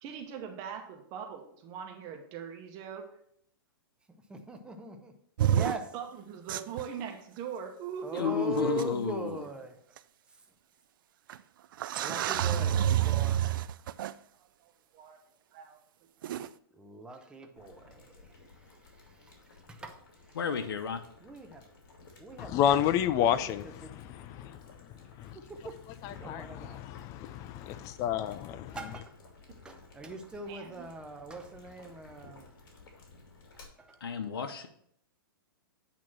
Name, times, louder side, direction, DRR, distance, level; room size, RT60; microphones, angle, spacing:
voice 1, 0.0-3.1 5.9-9.0 14.1-15.2 15.5-15.8 16.3-16.4 30.5-30.9, right 7 dB, 35° right, 1.1 m, -42 dB
voice 2, 4.1-5.1 5.5-5.9 8.0-9.8 11.9-13.4 16.7-20.4 21.2-21.7 22.2-22.8 23.2-23.5 23.8-23.9 25.3-25.8 26.1-26.8 28.7-29.1 29.6-32.5 33.5-34.2, right 3 dB, 5° right, 0.7 m, -41 dB
sound 1, 5.4-5.8 6.5-6.8 8.2-8.3 8.8-8.9 10.0-10.1 11.3-11.4 11.8-14.1 16.2-16.5, right 11 dB, 60° right, 0.4 m, -28 dB
voice 3, 8.1-9.4 20.3-21.0 34.0-34.7, left 7 dB, 85° left, 0.8 m, -32 dB
Boiling, 17.6-33.6, left 3 dB, 60° left, 2.4 m, -56 dB
voice 4, 22.4-25.4 26.0-28.8, left 10 dB, 25° left, 0.4 m, -31 dB
8.6 x 3.0 x 6.0 m
hypercardioid pair, 140°, 12 cm